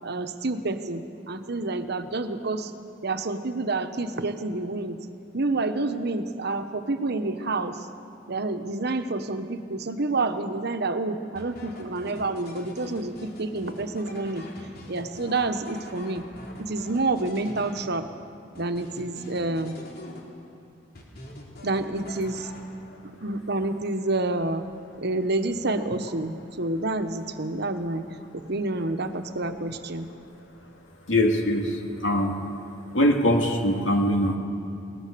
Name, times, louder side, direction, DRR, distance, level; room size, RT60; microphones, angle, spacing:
voice 1, 0.0-2.7 3.0-5.0 5.3-7.9 8.3-16.2 16.6-18.1 18.6-19.8 21.6-22.5 23.2-24.7 25.0-30.1, right 2 dB, 60° right, 8 dB, 1.1 m, -28 dB
sound 1, 11.4-18.2 18.5-20.6 21.0-23.0, left 1 dB, 55° left, 3.6 m, -43 dB
voice 2, 31.1-32.4 32.9-34.4, left 1 dB, 85° left, 2 dB, 2.5 m, -22 dB
23.0 x 18.5 x 6.9 m, 2.7 s
head